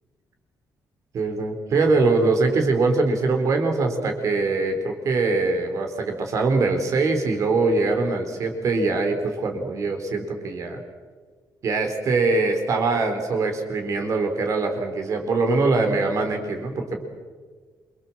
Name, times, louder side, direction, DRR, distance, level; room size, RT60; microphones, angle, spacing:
voice 1, 1.1-10.8 11.6-17.0, right 3 dB, 45° right, 4 dB, 4.2 m, -23 dB
28.0 x 24.0 x 7.5 m, 1.5 s
cardioid pair, 175°, 7 cm